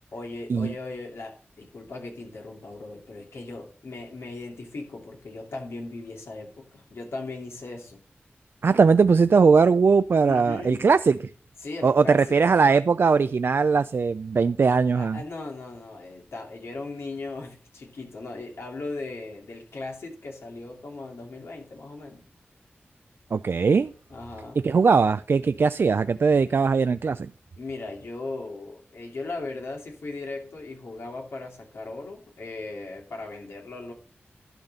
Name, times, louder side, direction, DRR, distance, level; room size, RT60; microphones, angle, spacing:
voice 1, 0.1-8.0 10.2-10.9 11.6-12.4 14.9-22.3 24.1-24.6 27.6-33.9, left 3 dB, 90° left, 2.6 m, -38 dB
voice 2, 8.6-11.2 11.8-15.2 23.3-23.9 24.6-27.3, right 5 dB, 65° right, 0.3 m, -20 dB
11.5 x 4.0 x 6.7 m
wide cardioid pair, 60°, 4 cm